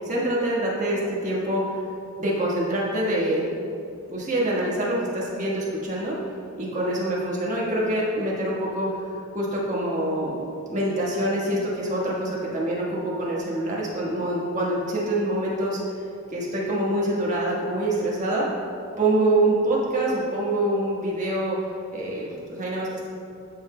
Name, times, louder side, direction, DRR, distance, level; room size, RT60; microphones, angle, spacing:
voice 1, 0.0-1.8 2.2-3.4 4.1-6.2 6.6-8.9 9.3-10.3 10.7-15.8 16.3-18.5 19.0-21.6 21.9-23.1, right 1 dB, 35° right, -5 dB, 1.4 m, -25 dB
12.5 x 5.6 x 2.2 m, 2.6 s
head